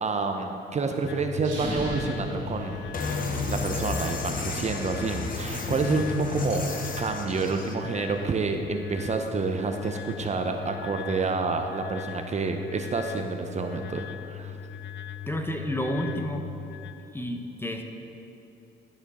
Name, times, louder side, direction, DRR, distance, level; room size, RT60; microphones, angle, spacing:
voice 1, 0.0-2.8 3.5-6.7 7.0-14.6, right 4 dB, 35° right, 4 dB, 0.6 m, -29 dB
sound 1, 1.1-16.9, left 8 dB, 60° left, 0.5 m, -39 dB
sound 2, 1.4-3.5, right 1 dB, 75° right, 2.1 m, -35 dB
sound 3, 2.9-7.7, left 3 dB, 45° left, 1.0 m, -31 dB
voice 2, 15.3-16.5 17.1-17.8, equal, 10° left, 4 dB, 0.7 m, -30 dB
12.5 x 5.1 x 4.1 m, 2.9 s
cardioid pair, 90°, 20 cm